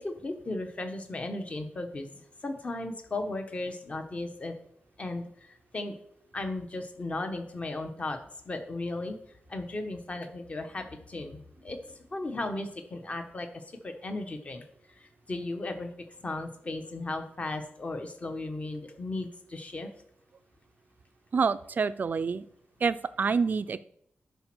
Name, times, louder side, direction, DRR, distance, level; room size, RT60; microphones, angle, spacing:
voice 1, 0.0-4.6 5.0-6.0 6.3-8.2 8.4-9.2 9.5-14.6 15.0-19.9, left 2 dB, 30° left, 6 dB, 1.2 m, -36 dB
voice 2, 21.3-22.4 22.8-23.8, right 5 dB, 45° right, 14 dB, 0.5 m, -27 dB
10.5 x 4.2 x 6.2 m, 0.70 s
wide cardioid pair, 150°, 4 cm